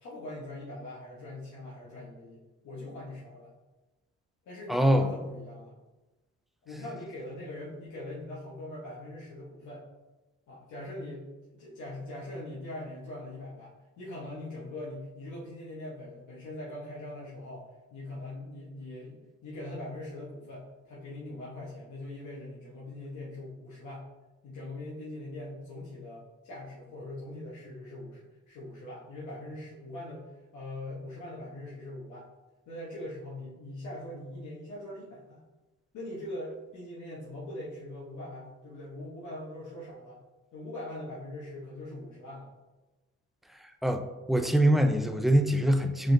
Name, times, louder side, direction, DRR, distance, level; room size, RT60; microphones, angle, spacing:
voice 1, 0.0-3.5 4.5-5.8 6.6-9.8 10.5-11.2 11.5-24.1 24.4-30.2 30.5-32.2 32.7-35.4 35.9-40.2 40.5-42.5, left 1 dB, 75° left, -6 dB, 1.1 m, -42 dB
voice 2, 4.7-5.1 43.8-46.1, right 1 dB, ahead, 6 dB, 0.3 m, -23 dB
4.8 x 3.8 x 2.6 m, 1.1 s
cardioid pair, 90°, 30 cm